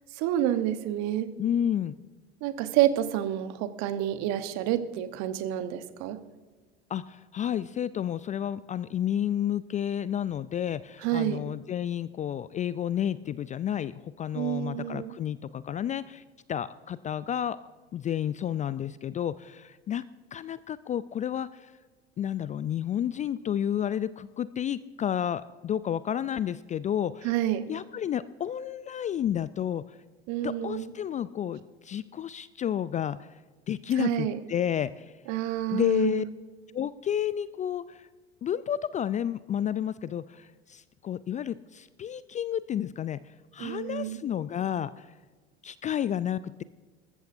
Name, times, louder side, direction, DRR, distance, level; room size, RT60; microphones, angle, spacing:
voice 1, 0.2-1.3 2.4-6.2 11.0-11.4 14.3-15.2 27.2-27.7 30.3-30.9 34.0-34.4 35.3-36.3 43.6-44.2, right 12 dB, 55° right, 10 dB, 1.1 m, -28 dB
voice 2, 1.4-2.0 6.9-16.2 16.5-17.6 17.9-20.0 20.3-21.7 22.2-27.3 27.7-30.0 30.4-33.4 33.7-35.1 35.7-36.2 36.7-38.1 38.4-45.1 45.6-46.6, left 10 dB, 25° left, 17 dB, 0.3 m, -31 dB
20.5 x 14.5 x 2.6 m, 1.3 s
figure-of-eight pair, 70°, 32 cm